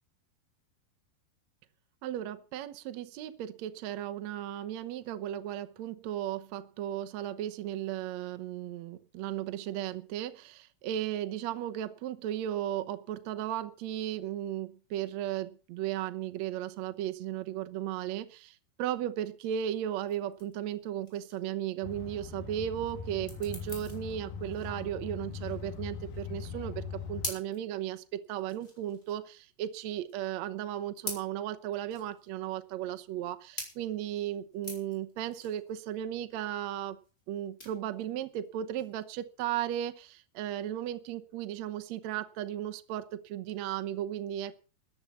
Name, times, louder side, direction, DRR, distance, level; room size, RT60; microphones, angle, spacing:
voice 1, 2.0-37.0 37.3-44.5, right 11 dB, 80° right, 8 dB, 1.5 m, -35 dB
sound 1, 20.0-39.8, left 1 dB, 15° left, 4.7 m, -46 dB
sound 2, 21.8-27.3, left 6 dB, 65° left, 3.0 m, -41 dB
13.5 x 9.6 x 7.1 m, 0.37 s
omnidirectional pair, 4.6 m